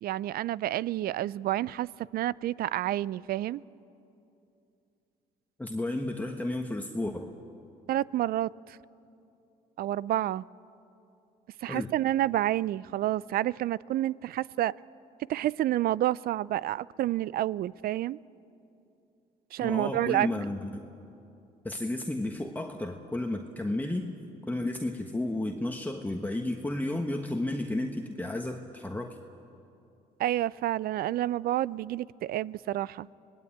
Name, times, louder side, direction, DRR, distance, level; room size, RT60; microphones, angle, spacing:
voice 1, 0.0-3.6 7.9-8.8 9.8-10.4 11.6-14.7 15.3-18.2 19.5-20.3 30.2-33.1, right 14 dB, 65° right, 22 dB, 0.5 m, -29 dB
voice 2, 5.6-7.4 11.6-11.9 19.6-20.8 21.6-24.1 24.5-29.2, left 1 dB, 10° left, 3 dB, 1.4 m, -32 dB
25.0 x 19.0 x 8.7 m, 2.7 s
supercardioid pair, 70°, 17 cm